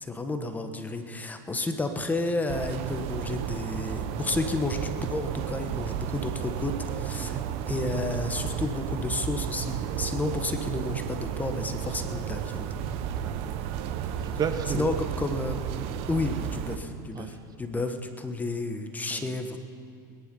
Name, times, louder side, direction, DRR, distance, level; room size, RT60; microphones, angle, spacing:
voice 1, 0.0-7.4 7.7-12.7 14.7-15.6 16.1-19.6, left 2 dB, 15° left, 7 dB, 1.2 m, -31 dB
sound 1, 2.5-16.8, right 9 dB, 60° right, 1.0 m, -33 dB
voice 2, 13.2-13.6 13.9-14.9 17.1-17.4 19.1-19.3, right 7 dB, 35° right, 9 dB, 1.0 m, -33 dB
21.0 x 10.5 x 5.4 m, 2.5 s
supercardioid pair, 105°, 11 cm